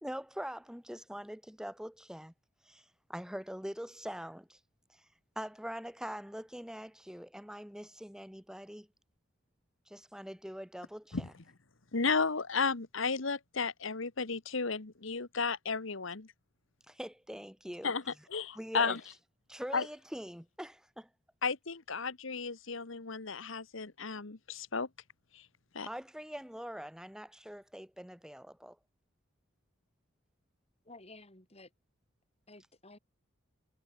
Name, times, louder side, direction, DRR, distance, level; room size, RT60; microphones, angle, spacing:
voice 1, 0.0-2.3 2.6-4.6 4.9-5.0 5.3-8.9 9.9-11.2 16.9-17.9 18.5-19.0 19.5-21.1 25.8-28.8, equal, 5° right, 3.3 m, -43 dB
voice 2, 11.9-16.3 17.8-18.0 18.3-19.0 19.7-19.9 21.4-24.9 25.3-25.4 25.7-25.9, left 4 dB, 65° left, 1.3 m, -33 dB
voice 3, 30.9-31.7 32.5-33.0, left 2 dB, 30° left, 5.2 m, -53 dB
head